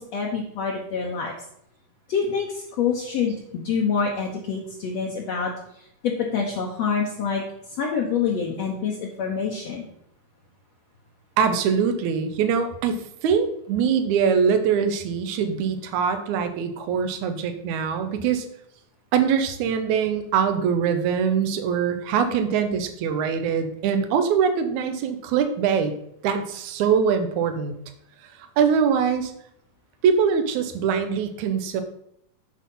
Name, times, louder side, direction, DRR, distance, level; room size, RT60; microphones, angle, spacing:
voice 1, 0.0-1.3 2.1-5.5 6.0-7.4 7.8-9.9, left 6 dB, 65° left, -1 dB, 1.8 m, -26 dB
voice 2, 11.4-18.5 19.1-25.9 26.2-27.8 28.6-29.3 30.0-31.8, right 7 dB, 70° right, 8 dB, 2.1 m, -23 dB
8.5 x 5.8 x 5.4 m, 0.73 s
omnidirectional pair, 4.0 m